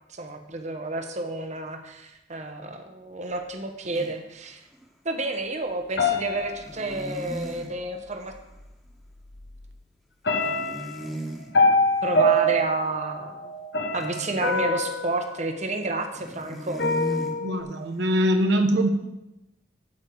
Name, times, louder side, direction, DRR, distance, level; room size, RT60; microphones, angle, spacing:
voice 1, 0.2-4.6 5.0-8.3 10.4-10.6 12.0-13.5 13.9-16.9, right 2 dB, 40° right, 5 dB, 1.1 m, -30 dB
sound 1, 3.9-4.1 4.7-4.8 6.6-7.7 10.4-11.5 13.9-14.7 16.1-17.4, equal, ahead, 1.4 m, -36 dB
sound 2, 6.0-7.4 8.6-8.7 9.2-9.7 10.2-16.2 16.8-17.6, left 1 dB, 80° left, 0.9 m, -25 dB
voice 2, 17.4-18.9, equal, 85° right, 5 dB, 0.9 m, -22 dB
9.0 x 5.3 x 7.8 m, 0.92 s
head